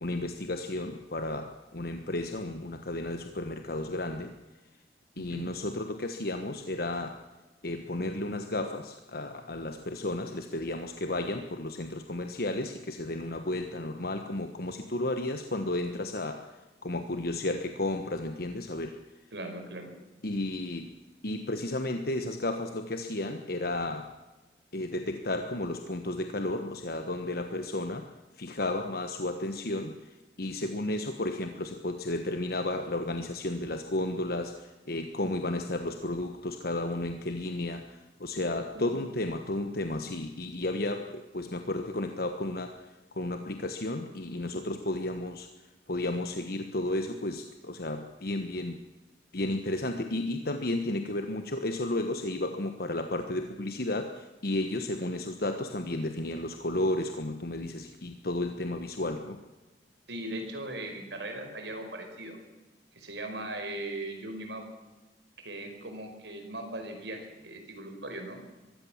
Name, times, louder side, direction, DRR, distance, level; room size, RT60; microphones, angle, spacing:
voice 1, 0.0-4.3 5.2-7.2 7.6-19.0 20.2-20.9 21.2-24.1 24.7-28.1 28.4-42.7 43.1-45.5 45.9-48.8 49.3-59.4, left 2 dB, 60° left, 6 dB, 1.3 m, -33 dB
voice 2, 19.3-19.9 38.7-39.0 60.1-62.4 62.9-64.6 65.4-68.4, right 1 dB, 90° right, 5 dB, 5.2 m, -39 dB
23.0 x 16.0 x 7.4 m, 1.2 s
head